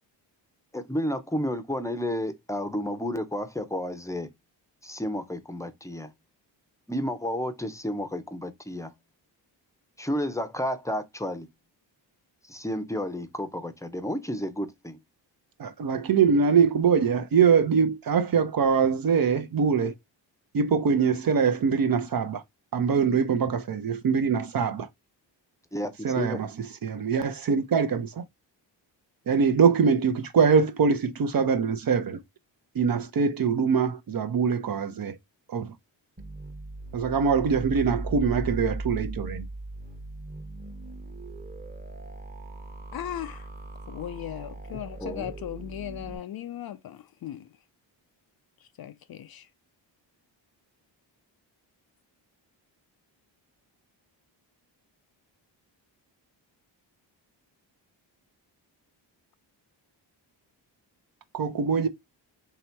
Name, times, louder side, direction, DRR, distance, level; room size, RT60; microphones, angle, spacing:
voice 1, 0.7-4.3 4.8-6.1 6.9-8.9 10.0-11.5 12.5-15.0 25.7-26.4 44.7-45.3, equal, 5° left, 0.6 m, -31 dB
voice 2, 15.6-19.9 20.5-22.4 22.7-24.9 26.0-28.2 29.3-32.2 32.7-35.2 35.5-35.7 36.9-39.5 61.3-61.9, right 6 dB, 50° right, 0.7 m, -23 dB
sound 1, 36.2-46.2, right 2 dB, 20° right, 1.0 m, -38 dB
voice 3, 42.9-43.5 43.9-47.5 48.8-49.5, left 11 dB, 55° left, 0.5 m, -37 dB
3.0 x 2.9 x 4.4 m
cardioid pair, 80°, 46 cm